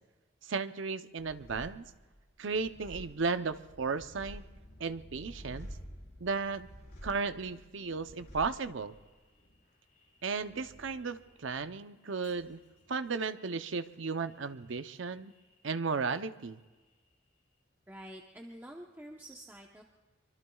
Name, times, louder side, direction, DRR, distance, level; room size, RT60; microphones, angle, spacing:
voice 1, 0.5-1.9 2.4-4.4 4.8-5.7 6.2-6.7 7.0-9.0 10.2-12.6 12.9-15.3 15.6-16.6, right 4 dB, 70° right, 11 dB, 0.7 m, -35 dB
sound 1, 1.2-16.1 16.3-17.1, equal, 45° left, 4.5 m, -52 dB
voice 2, 17.9-19.8, equal, 10° right, 0 dB, 0.9 m, -48 dB
24.5 x 24.5 x 2.3 m, 1.3 s
head